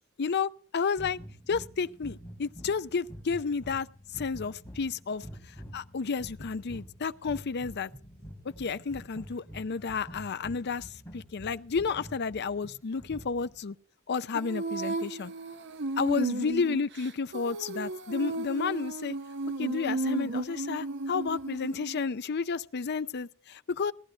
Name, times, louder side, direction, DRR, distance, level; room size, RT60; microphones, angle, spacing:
voice 1, 0.2-1.2 1.5-3.9 4.1-5.3 5.7-7.9 8.4-13.8 14.1-15.3 16.0-19.2 19.6-23.9, left 5 dB, 50° left, 0.5 m, -31 dB
sound 1, 1.0-13.6, equal, 15° left, 3.4 m, -47 dB
Female singing, 14.3-22.0, right 2 dB, 55° right, 1.0 m, -34 dB
18.0 x 11.0 x 4.4 m
head